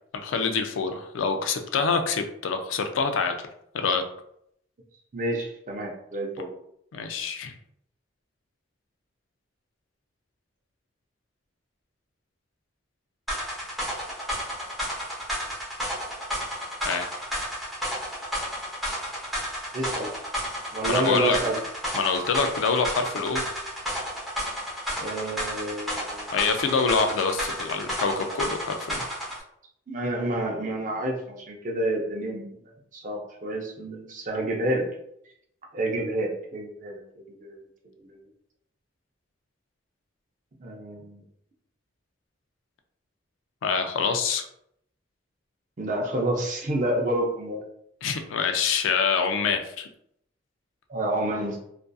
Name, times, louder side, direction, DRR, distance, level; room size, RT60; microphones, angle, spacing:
voice 1, 0.2-3.4 3.7-4.0 6.9-7.5 16.8-17.1 20.8-21.4 21.9-23.5 26.3-29.1 43.6-44.4 48.0-49.9, left 5 dB, 80° left, 6 dB, 0.4 m, -26 dB
voice 2, 5.1-6.5 19.7-20.1 20.7-21.6 25.0-26.3 29.9-32.6 32.9-34.9 35.7-37.0 37.3-37.6 37.9-38.2 40.6-41.2 45.8-47.6 50.9-51.6, right 1 dB, 40° right, 0 dB, 0.5 m, -29 dB
sound 1, 13.3-29.4, equal, ahead, 0.7 m, -32 dB
2.6 x 2.4 x 2.3 m, 0.73 s
head